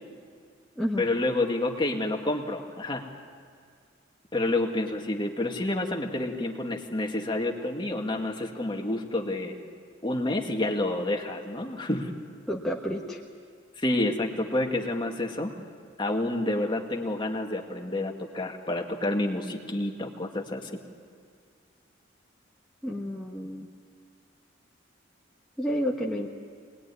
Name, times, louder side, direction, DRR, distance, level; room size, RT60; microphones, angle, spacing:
voice 1, 1.0-3.1 4.3-9.5 10.0-12.1 13.8-15.5 16.0-20.7, left 2 dB, 25° left, 2 dB, 1.9 m, -29 dB
voice 2, 12.5-13.2 22.8-23.7 25.6-26.3, equal, ahead, -3 dB, 1.3 m, -30 dB
25.0 x 20.5 x 9.7 m, 2.1 s
head